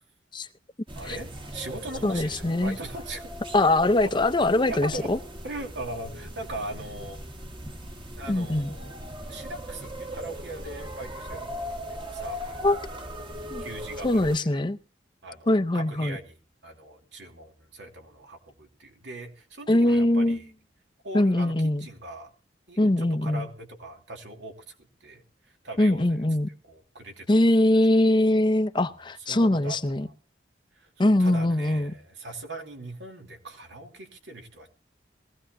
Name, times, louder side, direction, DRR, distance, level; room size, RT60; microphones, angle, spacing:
sound 1, 0.9-14.4, equal, 25° right, 1.4 m, -39 dB
voice 1, 0.9-3.3 3.9-4.1 4.7-5.1 5.4-7.2 8.1-9.0 9.3-12.9 13.6-14.6 15.2-20.5 21.0-22.3 22.7-26.2 26.7-27.4 28.9-29.0 29.3-30.1 30.7-34.7, right 2 dB, 80° right, 2.9 m, -40 dB
voice 2, 2.0-2.8 3.5-5.2 8.3-8.7 12.6-12.8 13.5-13.6 14.0-14.8 15.5-16.2 19.7-20.4 21.1-21.9 22.8-23.5 25.8-26.5 27.3-30.1 31.0-31.9, left 1 dB, 25° left, 0.6 m, -22 dB
21.5 x 16.0 x 2.6 m
head